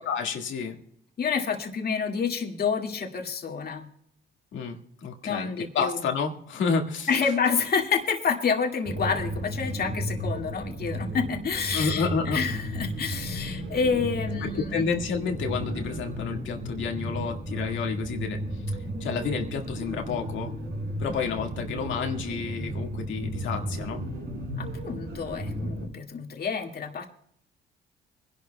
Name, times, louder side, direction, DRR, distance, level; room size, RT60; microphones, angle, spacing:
voice 1, 0.0-0.8 4.5-5.5 5.7-7.1 11.7-12.4 14.4-18.4 19.0-20.5 21.0-24.0, left 5 dB, 75° left, 3 dB, 1.9 m, -30 dB
voice 2, 1.2-3.9 5.2-6.0 7.1-14.9 24.6-27.1, left 5 dB, 50° left, 2 dB, 2.1 m, -28 dB
sound 1, 8.8-25.9, equal, 60° right, 4.8 m, -34 dB
24.5 x 11.5 x 2.3 m, 0.68 s
cardioid pair, 90°, 20 cm